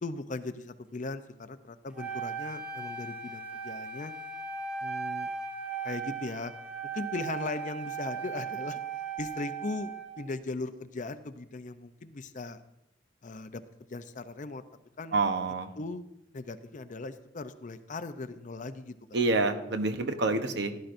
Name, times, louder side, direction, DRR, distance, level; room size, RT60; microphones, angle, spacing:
voice 1, 0.0-4.1 4.8-5.3 5.8-6.5 6.9-8.8 9.2-12.6 13.2-13.6 13.9-14.6 15.0-15.2 15.8-16.0 16.3-19.2, left 3 dB, 40° left, 11 dB, 0.5 m, -38 dB
Wind instrument woodwind instrument, 1.9-10.2, right 6 dB, 5° right, 1.1 m, -37 dB
voice 2, 15.1-15.7 19.1-20.8, right 3 dB, 65° right, 7 dB, 1.0 m, -27 dB
16.0 x 11.5 x 2.6 m, 0.87 s
head